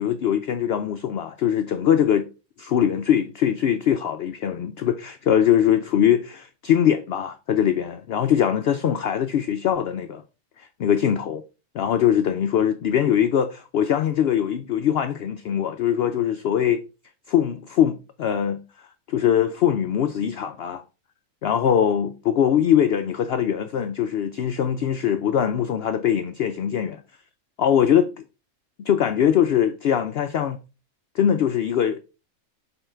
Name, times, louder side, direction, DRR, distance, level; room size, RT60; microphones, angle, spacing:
voice 1, 0.0-2.3 2.6-10.2 10.6-11.4 11.7-16.8 17.3-18.6 19.1-20.8 21.4-27.0 27.6-28.1 28.8-30.6 31.1-32.0, left 9 dB, 65° left, 0.6 m, -22 dB
6.8 x 3.9 x 4.4 m
omnidirectional pair, 1.5 m